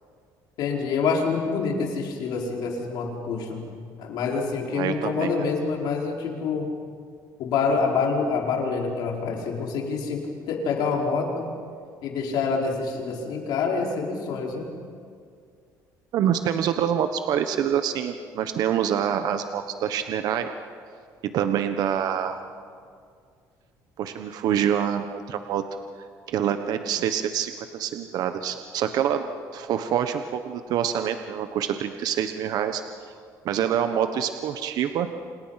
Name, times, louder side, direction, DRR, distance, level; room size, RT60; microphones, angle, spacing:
voice 1, 0.6-3.7 4.0-6.7 7.4-11.5 12.0-14.7, left 4 dB, 75° left, 0 dB, 5.0 m, -26 dB
voice 2, 4.7-5.3 16.1-20.5 21.3-22.4 24.0-25.6 26.3-29.2 29.5-32.8 33.4-35.1, right 9 dB, 65° right, 8 dB, 1.2 m, -26 dB
29.0 x 27.5 x 5.9 m, 2.2 s
cardioid pair, 135°, 7 cm